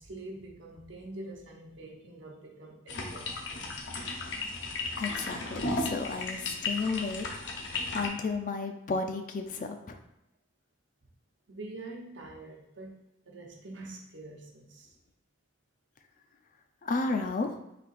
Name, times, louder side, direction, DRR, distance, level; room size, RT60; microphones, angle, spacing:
voice 1, 0.0-3.7 4.8-4.9 11.5-12.9 13.2-14.9, right 2 dB, 75° right, 0 dB, 0.9 m, -45 dB
sound 1, 2.9-8.1, left 3 dB, 70° left, 0.7 m, -35 dB
voice 2, 5.0-7.3 7.9-10.0 16.8-17.6, left 3 dB, 40° left, 6 dB, 0.4 m, -32 dB
4.2 x 2.7 x 4.1 m, 0.85 s
head